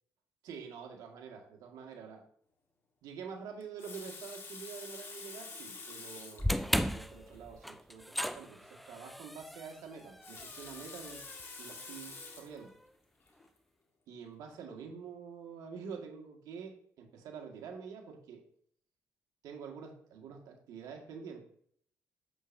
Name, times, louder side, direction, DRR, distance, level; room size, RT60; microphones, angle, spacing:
voice 1, 0.4-2.2 3.0-6.5 6.8-11.2 11.6-12.7 14.1-18.4 19.4-21.4, right 6 dB, 75° right, 2 dB, 1.9 m, -47 dB
Water tap faucet, 3.6-6.5 7.3-7.4 7.7-7.8 10.0-12.6 13.3-13.5, left 4 dB, 40° left, 1.9 m, -47 dB
sound 1, 6.4-12.7, equal, ahead, 0.4 m, -37 dB
8.1 x 7.2 x 2.7 m, 0.64 s
cardioid pair, 95°, 6 cm